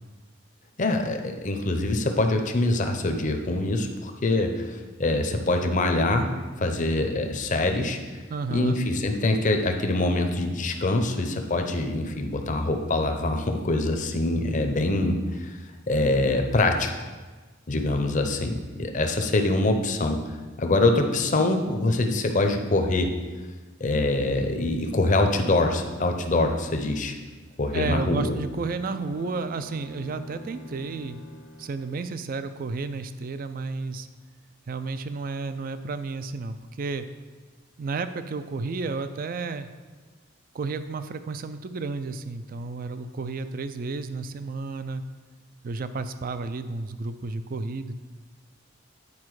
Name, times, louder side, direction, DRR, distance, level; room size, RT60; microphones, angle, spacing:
voice 1, 0.8-6.3 6.6-8.0 8.5-15.5 15.9-17.1 17.7-20.2 20.6-23.1 23.8-27.2 27.6-28.3, left 2 dB, 40° left, 5 dB, 0.7 m, -24 dB
voice 2, 8.3-8.8 27.7-31.2 31.6-34.1 34.7-37.1 37.8-39.7 40.5-45.0 45.6-48.0, right 3 dB, 45° right, 11 dB, 0.4 m, -32 dB
Bowed string instrument, 28.1-32.2, left 1 dB, 80° left, 1.0 m, -44 dB
9.7 x 4.2 x 4.7 m, 1.3 s
head